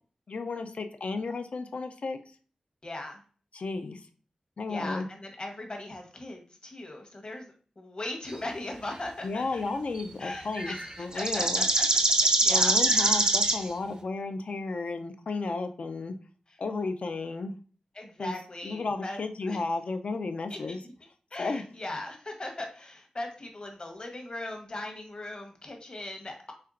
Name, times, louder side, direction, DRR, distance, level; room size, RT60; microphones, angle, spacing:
voice 1, 0.3-2.2 3.5-4.0 4.6-5.1 9.2-11.6 12.5-16.1 16.6-17.5 18.2-18.4 18.6-20.8 21.4-21.7, left 3 dB, 65° left, 7 dB, 0.5 m, -33 dB
voice 2, 2.8-3.2 4.7-9.6 10.2-11.9 12.4-12.7 17.9-19.2 19.5-19.6 20.5-20.9 21.3-26.5, left 2 dB, 40° left, 3 dB, 1.0 m, -39 dB
sound 1, 10.0-10.1 10.6-13.6, right 2 dB, 35° right, 0.5 m, -24 dB
4.4 x 3.3 x 2.5 m, 0.40 s
wide cardioid pair, 95°, 2 cm